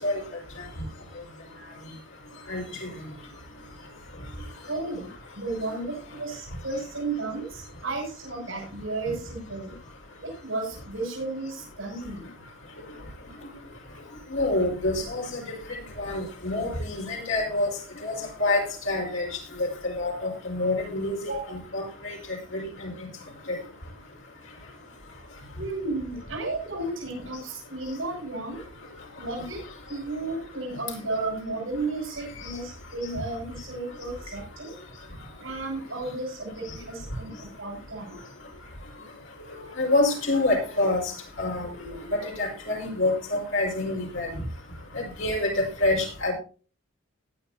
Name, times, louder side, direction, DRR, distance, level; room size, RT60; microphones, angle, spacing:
voice 1, 4.7-9.8 10.2-12.3 21.2-21.5 25.6-28.6 29.2-29.6 29.9-34.7 35.4-38.2, right 2 dB, 80° right, -2 dB, 6.2 m, -33 dB
voice 2, 14.3-15.4 16.0-17.7 18.0-18.1 18.4-19.2 19.8-21.2 21.7-22.1 22.5-22.9 39.8-41.0 41.4-41.9 42.2-44.3 45.2-46.3, left 2 dB, 80° left, 0 dB, 5.4 m, -26 dB
18.5 x 10.0 x 2.8 m, 0.37 s
head